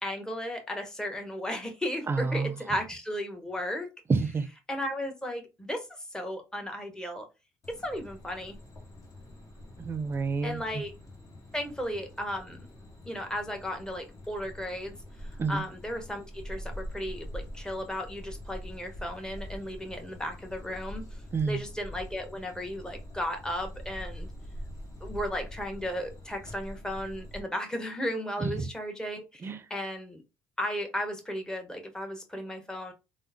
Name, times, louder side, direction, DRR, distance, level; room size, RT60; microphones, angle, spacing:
voice 1, 0.0-3.9 4.7-7.3 7.7-8.6 10.4-10.9 11.5-12.6 13.0-21.0 21.4-24.3 25.0-30.2 30.6-32.9, equal, 10° left, 1.0 m, -35 dB
voice 2, 2.1-2.5 4.1-4.5 9.8-10.8 15.4-15.6 21.3-21.6 28.4-28.5 29.4-29.6, right 4 dB, 30° right, 0.5 m, -29 dB
sound 1, 7.6-27.4, equal, 45° left, 1.2 m, -44 dB
3.5 x 2.0 x 2.7 m
hypercardioid pair, 60°, 8 cm